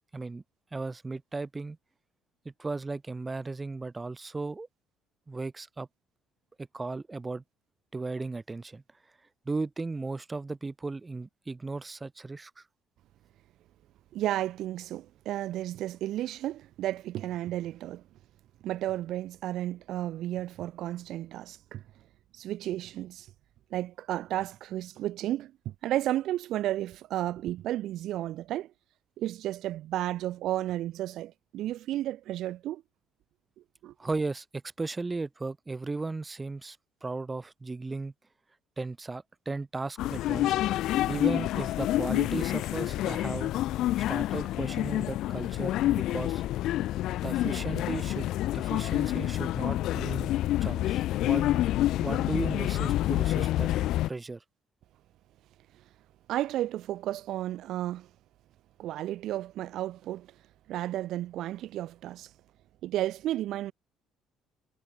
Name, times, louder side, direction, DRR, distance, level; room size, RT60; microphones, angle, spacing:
voice 1, 0.1-0.4 0.7-1.8 2.5-4.7 5.3-5.9 6.7-7.4 7.9-8.8 9.5-12.6 34.0-34.5 34.8-36.8 37.0-38.1 38.8-40.6 41.1-43.5 44.1-46.4 47.2-50.3 50.6-51.7 52.0-53.7 54.1-54.4, right 3 dB, 20° right, 5.1 m, -36 dB
voice 2, 14.1-18.0 18.6-21.8 22.3-23.3 23.7-28.7 29.2-32.8 33.8-33.9 56.3-58.1 58.8-60.3 60.7-62.3 62.8-63.7, right 13 dB, 65° right, 2.3 m, -33 dB
sound 1, 40.0-54.1, left 14 dB, 70° left, 0.5 m, -28 dB
supercardioid pair, 70°, 0 cm